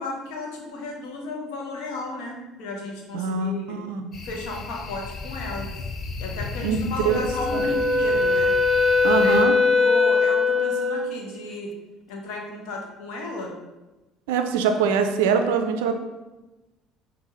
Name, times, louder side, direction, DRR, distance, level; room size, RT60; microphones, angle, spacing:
voice 1, 0.0-3.8 4.2-5.7 6.2-8.5 9.1-9.4 9.7-11.7 12.1-13.5, left 2 dB, 65° left, 0 dB, 0.9 m, -34 dB
voice 2, 3.1-4.2 6.6-6.8 7.1-7.2 7.5-7.7 9.0-9.5 14.3-15.9, right 6 dB, 75° right, 7 dB, 0.4 m, -23 dB
sound 1, 4.1-9.4, left 3 dB, 45° left, 0.5 m, -35 dB
Wind instrument woodwind instrument, 7.1-11.1, left 4 dB, 10° right, 0.5 m, -21 dB
5.4 x 2.4 x 2.9 m, 1.1 s
hypercardioid pair, 60°, 0 cm